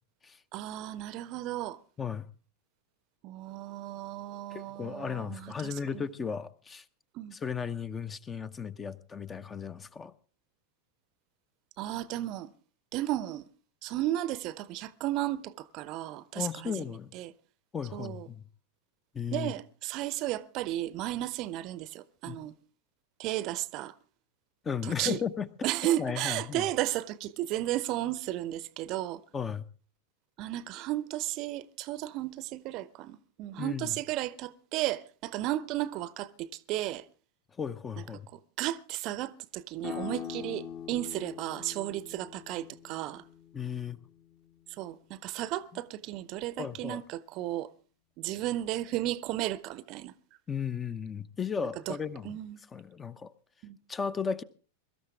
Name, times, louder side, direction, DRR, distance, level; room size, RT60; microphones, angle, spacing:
voice 1, 0.5-1.8 3.2-6.0 7.1-7.3 11.8-12.5 12.9-13.5 13.8-16.8 17.1-17.3 17.9-18.3 19.3-22.5 23.2-23.9 24.8-25.2 25.6-29.2 30.4-37.0 38.6-43.2 44.8-47.7 48.2-50.1 51.9-52.0 52.2-52.6 53.6-53.8, right 14 dB, 40° right, 0.7 m, -34 dB
voice 2, 4.5-6.8 7.3-10.1 16.3-17.1 17.7-18.4 19.1-19.5 22.3-22.4 24.6-25.5 26.0-26.7 29.3-29.6 33.6-34.0 37.6-38.3 43.5-44.0 46.6-47.0 50.5-52.3 52.7-53.3 53.9-54.4, left 6 dB, 20° left, 0.8 m, -35 dB
sound 1, 39.8-45.2, left 9 dB, 35° left, 1.5 m, -44 dB
22.5 x 13.0 x 3.5 m
figure-of-eight pair, 90°, 0 cm